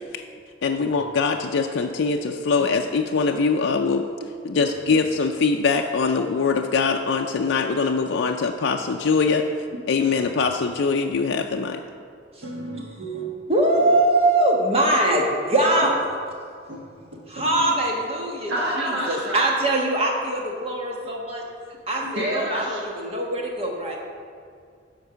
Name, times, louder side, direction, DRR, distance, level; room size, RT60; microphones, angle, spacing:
voice 1, 0.6-4.1 4.4-9.5 9.9-11.8, left 4 dB, 70° left, 3 dB, 0.4 m, -22 dB
voice 2, 12.4-13.4 16.7-16.8 18.5-19.4 22.0-22.8, right 1 dB, 65° right, -4 dB, 1.4 m, -29 dB
voice 3, 13.5-16.0 17.3-18.5 18.8-21.4 21.9-24.0, right 1 dB, 30° right, -1 dB, 1.3 m, -22 dB
10.5 x 4.6 x 6.9 m, 2.2 s
head